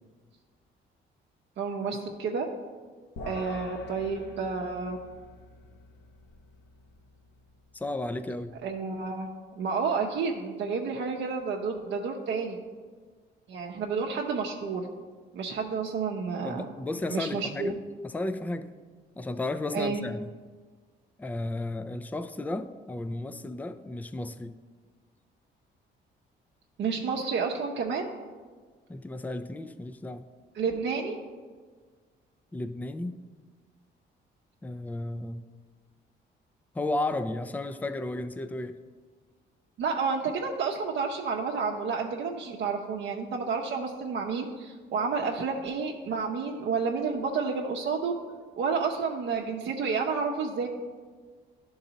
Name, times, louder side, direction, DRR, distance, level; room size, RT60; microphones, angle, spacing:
voice 1, 1.6-2.5 3.2-5.0 8.6-9.3 9.6-12.6 13.5-14.9 15.3-16.7 17.1-17.7 19.7-20.0 26.8-28.1 30.5-31.2 39.8-48.1 48.6-50.7, right 5 dB, 70° right, 1 dB, 0.7 m, -30 dB
sound 1, 3.2-8.7, left 2 dB, 65° left, 1.1 m, -46 dB
voice 2, 7.7-8.6 16.4-17.8 18.0-18.7 19.2-20.3 21.2-24.6 28.9-30.3 32.5-33.2 34.6-35.5 36.7-38.8, left 2 dB, 10° left, 11 dB, 0.4 m, -33 dB
11.0 x 4.0 x 4.0 m, 1.5 s
cardioid pair, 90°, 20 cm